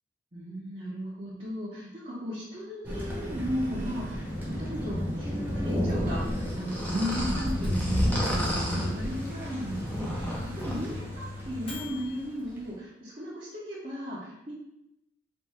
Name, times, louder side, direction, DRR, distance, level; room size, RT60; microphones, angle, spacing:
voice 1, 0.3-14.5, equal, 40° right, -10 dB, 0.9 m, -36 dB
Thunder, 2.8-12.6, equal, 10° right, 1.0 m, -33 dB
sound 1, 6.3-11.0, equal, 10° left, 0.7 m, -33 dB
Microwave oven, 7.4-12.2, left 2 dB, 35° left, 1.2 m, -40 dB
3.5 x 2.7 x 4.1 m, 0.84 s
head